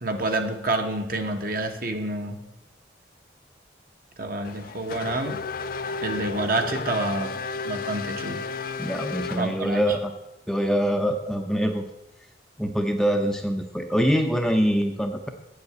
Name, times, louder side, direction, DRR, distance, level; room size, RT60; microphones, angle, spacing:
voice 1, 0.0-2.4 4.2-5.4 6.0-7.3 7.7-8.4 9.4-9.8, right 2 dB, 50° right, 5 dB, 1.2 m, -28 dB
Race car auto racing / Accelerating revving vroom, 4.4-9.9, left 4 dB, 50° left, 0.4 m, -33 dB
voice 2, 8.8-10.1 10.5-11.9 12.6-15.3, equal, ahead, 4 dB, 0.6 m, -24 dB
7.9 x 7.6 x 8.2 m, 0.93 s
head